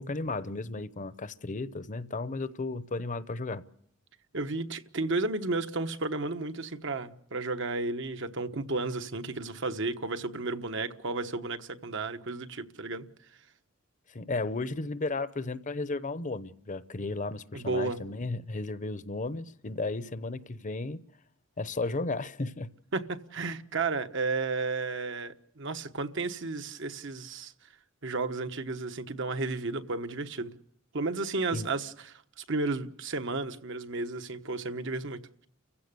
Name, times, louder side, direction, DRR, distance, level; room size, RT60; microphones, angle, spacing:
voice 1, 0.0-3.6 14.1-21.0 21.6-22.7 31.5-31.7, left 3 dB, 40° left, 0.8 m, -34 dB
voice 2, 4.3-13.1 17.5-18.0 22.9-27.5 28.0-30.5 30.9-35.2, right 3 dB, 60° right, 1.2 m, -33 dB
30.0 x 16.0 x 6.8 m
head